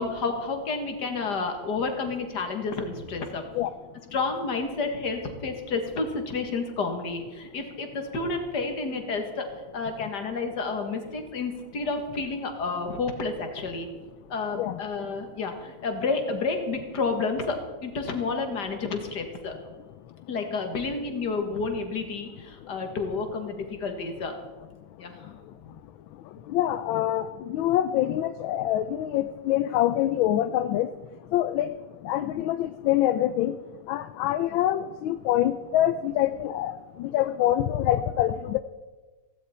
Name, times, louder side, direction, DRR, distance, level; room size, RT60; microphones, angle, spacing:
voice 1, 0.0-3.4 4.1-9.5 9.7-13.9 14.3-19.6 20.3-24.4 25.0-25.4, left 4 dB, 55° left, 5 dB, 2.3 m, -30 dB
voice 2, 26.5-30.9 31.3-31.7 32.0-33.6 33.9-36.7 37.0-38.6, left 12 dB, 80° left, 11 dB, 1.4 m, -25 dB
16.5 x 16.0 x 4.3 m, 1.3 s
omnidirectional pair, 2.2 m